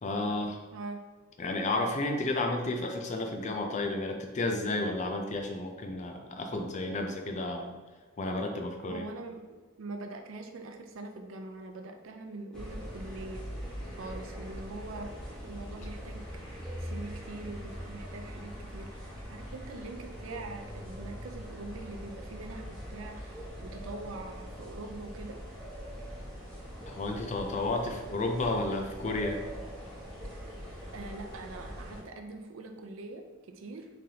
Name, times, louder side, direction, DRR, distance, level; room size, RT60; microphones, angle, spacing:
voice 1, 0.0-0.6 1.4-7.7 8.2-9.1 26.9-29.4, left 2 dB, 35° left, 4 dB, 0.5 m, -32 dB
voice 2, 0.7-1.0 8.8-13.5 14.0-15.1 15.4-25.4 30.4-30.5 30.9-33.9, right 2 dB, 85° right, 4 dB, 0.5 m, -43 dB
sound 1, 12.5-32.0, equal, 5° left, 1.0 m, -42 dB
3.8 x 3.3 x 2.8 m, 1.3 s
head